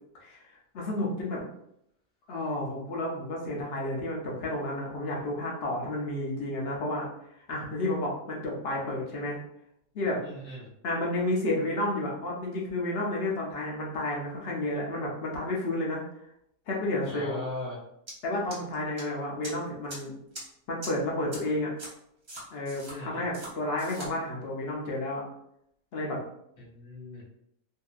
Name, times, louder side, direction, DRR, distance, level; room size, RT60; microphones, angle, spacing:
voice 1, 0.7-1.4 2.3-7.1 7.5-9.4 9.9-10.2 10.8-16.0 16.7-17.4 18.2-20.1 20.7-21.7 22.5-25.2 25.9-26.2, left 1 dB, 55° left, -2 dB, 0.8 m, -31 dB
voice 2, 10.2-10.7 17.0-17.8 22.9-23.2 26.6-27.2, left 1 dB, 40° left, -7 dB, 1.2 m, -39 dB
sound 1, 18.1-18.2 18.5-19.0 19.4-19.5 19.9-20.0 20.3-20.4 20.8-20.9 21.3-21.4 21.8-21.9 22.3-22.9 23.3-23.5 23.8-24.1, right 1 dB, 35° right, 0.9 m, -40 dB
2.8 x 2.5 x 2.3 m, 0.76 s
omnidirectional pair, 1.5 m